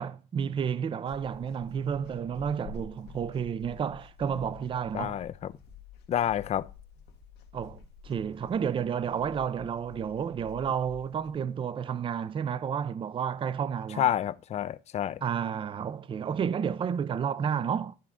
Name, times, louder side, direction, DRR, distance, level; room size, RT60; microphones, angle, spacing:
voice 1, 0.0-5.2 7.5-14.1 15.2-18.0, right 7 dB, 30° right, 0.4 m, -31 dB
sound 1, 1.1-11.3, left 6 dB, 80° left, 1.2 m, -49 dB
voice 2, 4.9-5.5 6.1-6.7 14.0-15.2, left 10 dB, 40° left, 0.4 m, -29 dB
12.0 x 4.7 x 3.6 m
cardioid pair, 110°, 17 cm